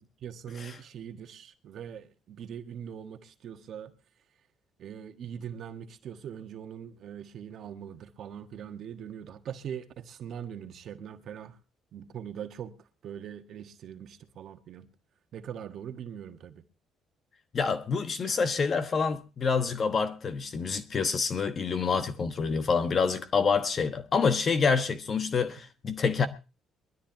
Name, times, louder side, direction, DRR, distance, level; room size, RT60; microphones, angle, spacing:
voice 1, 0.2-3.9 4.8-11.5 11.9-12.7 13.0-14.9 15.3-16.5, right 8 dB, 50° right, 1.4 m, -41 dB
voice 2, 17.5-26.3, left 5 dB, 35° left, 1.2 m, -27 dB
22.5 x 13.5 x 2.8 m
cardioid pair, 140°, 0 cm